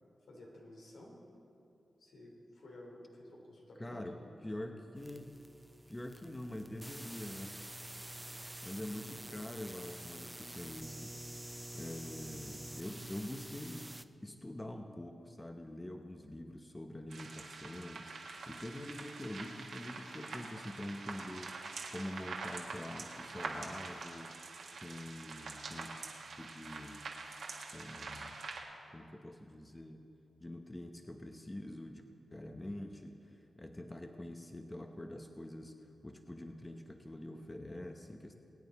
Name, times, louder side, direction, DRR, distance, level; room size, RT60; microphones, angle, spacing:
voice 1, 0.3-1.2 2.0-4.0 4.3-4.6, left 1 dB, 85° left, -2 dB, 3.0 m, -53 dB
voice 2, 3.8-5.4 5.9-7.8 8.3-11.1 11.7-21.6 21.9-24.4 24.8-26.0 26.4-27.0 27.7-28.4 28.9-30.1 30.4-32.0 32.3-38.4, left 1 dB, 20° left, 4 dB, 1.0 m, -45 dB
sound 1, 5.0-14.0, right 1 dB, 10° right, 0.5 m, -48 dB
sound 2, 17.1-28.6, right 3 dB, 80° right, 1.7 m, -45 dB
22.5 x 8.9 x 4.2 m, 2.7 s
cardioid pair, 65°, 0 cm